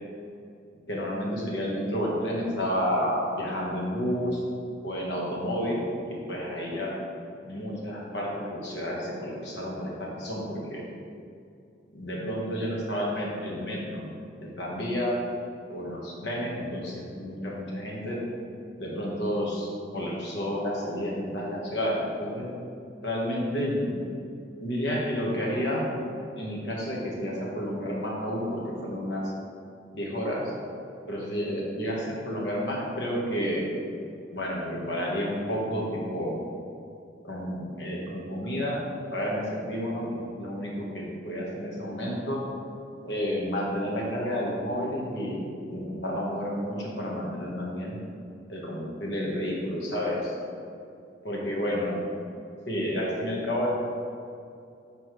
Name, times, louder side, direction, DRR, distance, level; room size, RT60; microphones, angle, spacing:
voice 1, 0.9-4.4 4.8-5.9 6.3-6.9 7.4-10.8 11.9-14.1 14.4-15.2 15.7-18.2 18.8-22.5 23.0-23.9 24.6-25.8 26.3-29.3 29.9-30.5 31.1-33.6 34.3-36.4 37.2-38.8 39.1-42.4 43.0-48.0 48.5-50.3 51.2-52.0 52.7-53.8, equal, 70° left, -3 dB, 1.3 m, -30 dB
7.1 x 5.2 x 3.1 m, 2.5 s
head